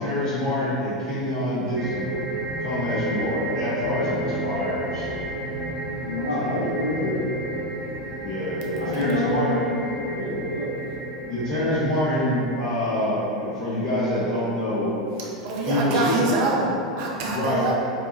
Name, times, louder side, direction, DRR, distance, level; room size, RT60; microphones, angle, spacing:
voice 1, 0.0-2.1 2.6-5.5 6.2-6.5 8.2-9.6 11.3-15.0 15.7-16.1 17.3-17.7, left 1 dB, 20° left, -11 dB, 0.9 m, -26 dB
sound 1, 1.8-13.3, right 2 dB, 20° right, 0.8 m, -32 dB
voice 2, 6.0-7.2 8.7-10.8, left 1 dB, 75° left, -4 dB, 0.5 m, -27 dB
voice 3, 15.2-17.7, right 2 dB, 45° right, -3 dB, 0.5 m, -25 dB
2.6 x 2.3 x 2.6 m, 2.7 s
figure-of-eight pair, 85°, 4 cm